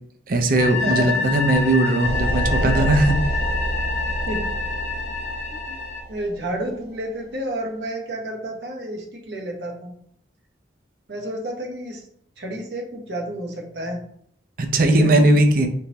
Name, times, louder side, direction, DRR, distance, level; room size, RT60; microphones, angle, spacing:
voice 1, 0.3-3.2 14.6-15.7, right 1 dB, 50° right, 5 dB, 0.5 m, -18 dB
sound 1, 0.5-6.0, left 4 dB, 65° left, 0.8 m, -27 dB
voice 2, 0.8-1.2 2.6-2.9 4.0-4.6 5.7-5.8 6.1-9.9 11.1-12.1 12.4-14.0 14.9-15.3, right 1 dB, 70° right, 1 dB, 0.9 m, -30 dB
sound 2, 2.0-6.8, right 1 dB, 35° right, 1.1 m, -27 dB
3.9 x 3.6 x 2.9 m, 0.67 s
head